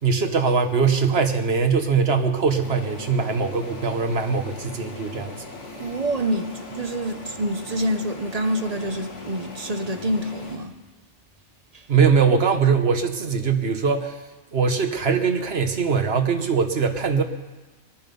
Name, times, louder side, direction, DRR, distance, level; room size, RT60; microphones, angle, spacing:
voice 1, 0.0-5.3 11.9-14.2 14.5-17.2, right 5 dB, 55° right, 6 dB, 1.4 m, -21 dB
sound 1, 2.6-10.6, left 2 dB, 65° left, 2.7 m, -39 dB
voice 2, 5.8-10.7, right 1 dB, 35° right, 7 dB, 0.9 m, -27 dB
22.5 x 10.5 x 5.4 m, 1.2 s
omnidirectional pair, 1.3 m